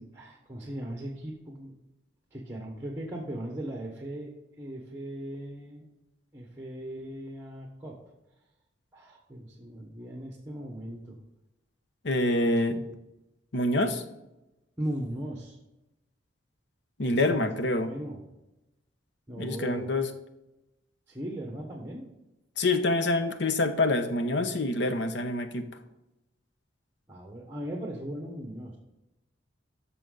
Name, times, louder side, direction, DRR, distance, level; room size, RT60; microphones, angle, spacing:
voice 1, 0.0-1.7 2.3-5.9 6.3-8.0 8.9-11.2 14.8-15.6 17.0-17.5 17.9-18.2 19.3-19.9 21.1-22.1 27.1-28.8, right 1 dB, 15° right, 0 dB, 1.2 m, -38 dB
voice 2, 12.0-12.8 13.5-14.0 17.0-17.9 19.4-20.1 22.6-25.7, left 2 dB, 65° left, 9 dB, 0.9 m, -26 dB
13.5 x 6.2 x 3.9 m, 0.95 s
head